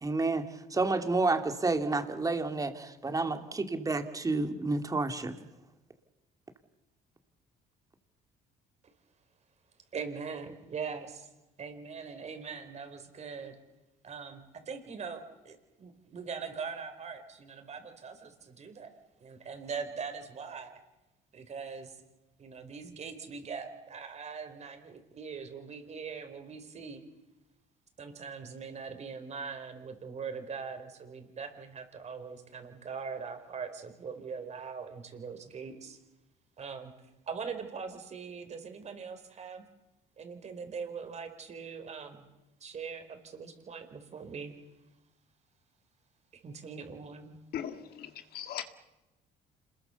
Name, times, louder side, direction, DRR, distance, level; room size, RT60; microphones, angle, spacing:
voice 1, 0.0-0.4 0.7-5.3, right 3 dB, 20° right, 7 dB, 2.6 m, -30 dB
voice 2, 9.9-11.3 11.6-13.6 14.0-20.8 21.3-22.0 22.4-27.0 28.0-36.0 36.6-36.9 37.3-39.6 40.2-42.3 42.6-44.6 46.3-47.4, right 5 dB, 40° right, 7 dB, 4.4 m, -41 dB
voice 3, 47.5-48.1 48.3-48.6, left 10 dB, 65° left, 8 dB, 1.9 m, -37 dB
27.0 x 21.5 x 7.0 m, 1.0 s
cardioid pair, 110°, 17 cm